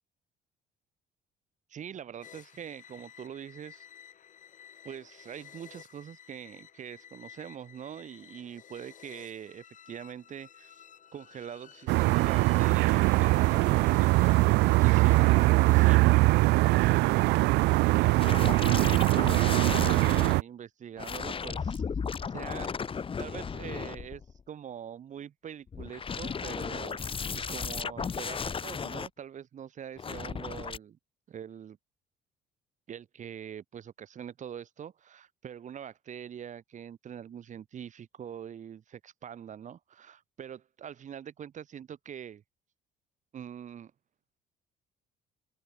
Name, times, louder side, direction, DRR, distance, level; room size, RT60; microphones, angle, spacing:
voice 1, 1.7-3.8 4.8-10.8 11.1-14.4 14.8-18.4 18.9-21.8 22.3-24.2 24.5-27.0 27.3-31.0 31.3-31.8 32.9-42.4 43.3-43.9, right 9 dB, 45° right, 2.5 m, -43 dB
sound 1, 2.2-16.0, left 9 dB, 50° left, 4.7 m, -52 dB
sound 2, 11.9-20.4, right 22 dB, 90° right, 0.7 m, -22 dB
sound 3, 18.2-20.4 21.0-24.4 25.7-29.1 30.0-30.8, left 6 dB, 30° left, 2.5 m, -35 dB
open air
cardioid pair, 110°, 17 cm